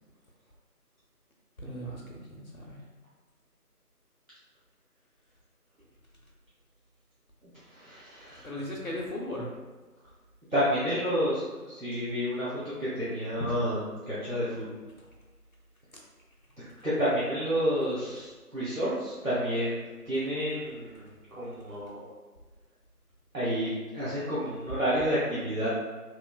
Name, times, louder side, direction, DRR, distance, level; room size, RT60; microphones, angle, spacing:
voice 1, 1.6-2.0 2.3-2.8 8.3-9.5 15.0-15.1, left 1 dB, 65° left, -2 dB, 0.7 m, -37 dB
voice 2, 7.7-8.5 10.5-14.6 16.6-22.1 23.3-25.7, equal, 60° right, -11 dB, 1.0 m, -30 dB
3.1 x 3.0 x 2.3 m, 1.3 s
figure-of-eight pair, 180°, 47 cm